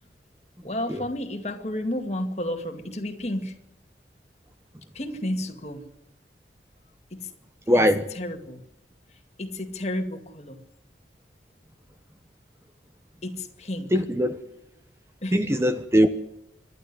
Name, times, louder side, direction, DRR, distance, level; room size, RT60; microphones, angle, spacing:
voice 1, 0.6-3.6 4.9-5.8 7.1-7.3 7.7-7.8 8.1-8.6 9.1-10.6 13.2-14.0 15.2-15.5, left 1 dB, 35° left, 2.2 m, -32 dB
voice 2, 7.7-8.0 13.9-14.4 15.3-16.1, equal, 15° right, 0.8 m, -20 dB
26.0 x 11.5 x 9.6 m
head